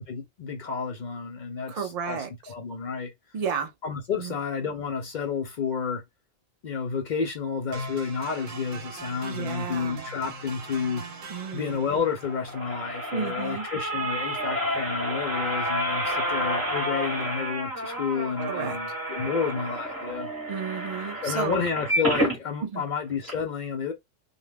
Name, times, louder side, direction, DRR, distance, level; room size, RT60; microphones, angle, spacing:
voice 1, 0.1-2.2 2.5-3.1 3.8-6.0 6.6-11.0 11.5-20.3 21.2-23.9, left 6 dB, 60° left, 0.5 m, -30 dB
voice 2, 1.7-2.5 3.3-3.7 4.1-4.4 9.3-10.1 11.3-11.8 13.1-13.7 18.5-18.8 20.5-21.7 22.6-22.9, right 6 dB, 80° right, 0.3 m, -32 dB
sound 1, 7.7-15.7, right 2 dB, 55° right, 0.8 m, -42 dB
sound 2, 12.2-22.4 22.9-23.0 23.2-23.3, right 1 dB, 20° right, 0.8 m, -30 dB
2.2 x 2.2 x 3.3 m
omnidirectional pair, 1.2 m